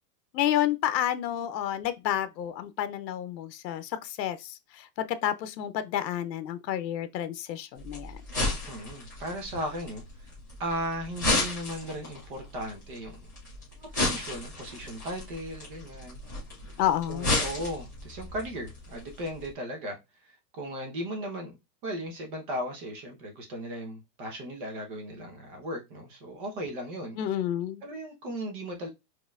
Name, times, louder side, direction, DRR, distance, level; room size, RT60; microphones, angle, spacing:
voice 1, 0.3-8.2 16.8-17.4 27.2-27.8, left 11 dB, 90° left, 0.7 m, -30 dB
sound 1, 7.8-19.5, left 2 dB, 15° left, 0.3 m, -34 dB
voice 2, 8.6-10.3 10.6-13.2 13.7-16.2 16.7-16.8 17.1-27.2 27.8-28.9, equal, 30° right, 1.0 m, -37 dB
5.4 x 3.0 x 2.4 m
supercardioid pair, 160°, 50 cm